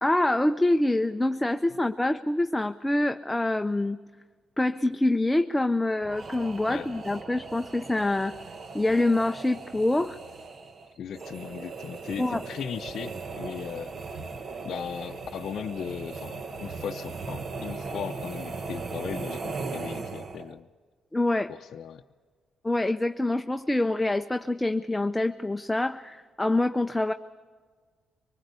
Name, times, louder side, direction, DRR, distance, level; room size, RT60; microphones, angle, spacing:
voice 1, 0.0-4.0 4.6-8.3 8.7-10.2 12.2-12.4 21.1-21.5 22.6-27.1, left 2 dB, 10° left, 8 dB, 0.6 m, -25 dB
sound 1, 6.0-20.6, right 4 dB, 45° right, 1.2 m, -38 dB
voice 2, 11.0-14.2 14.6-20.7 21.5-22.0, left 8 dB, 65° left, 3 dB, 0.6 m, -37 dB
23.5 x 20.0 x 8.2 m, 1.5 s
cardioid pair, 90°, 0 cm